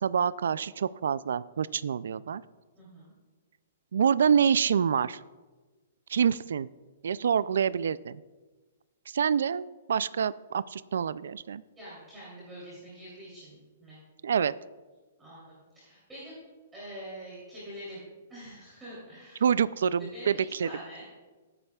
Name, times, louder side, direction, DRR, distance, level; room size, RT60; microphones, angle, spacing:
voice 1, 0.0-2.4 3.9-5.2 6.1-6.7 7.0-8.2 9.1-11.6 14.2-14.5 19.4-20.7, right 7 dB, 70° right, 17 dB, 0.3 m, -26 dB
voice 2, 2.7-3.1 11.8-14.0 15.2-16.4 16.7-19.5 20.1-21.1, equal, 5° right, -10 dB, 3.0 m, -45 dB
18.5 x 9.8 x 2.3 m, 1.3 s
hypercardioid pair, 175°, 0 cm